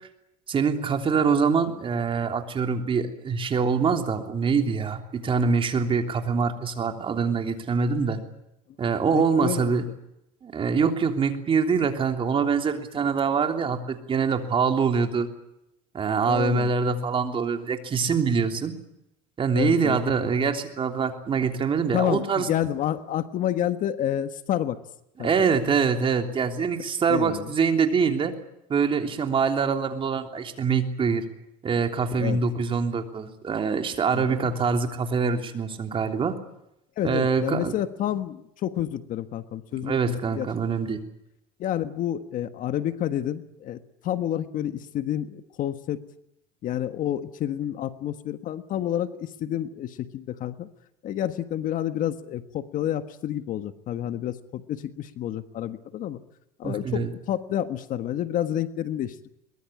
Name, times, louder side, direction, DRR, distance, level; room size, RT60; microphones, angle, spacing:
voice 1, 0.5-8.2 8.8-9.8 10.4-15.3 15.9-18.7 19.4-22.5 25.2-28.3 28.7-31.2 31.6-36.3 37.0-37.7 39.8-41.0 56.6-57.1, right 5 dB, 30° right, 5 dB, 3.3 m, -24 dB
voice 2, 9.1-9.8 16.2-16.7 19.5-20.0 21.9-24.8 25.2-25.3 27.1-27.5 32.2-32.4 34.1-34.5 37.0-40.5 41.6-46.0 46.6-50.7 51.0-56.2 56.6-59.2, left 11 dB, 45° left, 10 dB, 1.5 m, -29 dB
22.5 x 21.5 x 8.6 m, 0.83 s
cardioid pair, 130°, 19 cm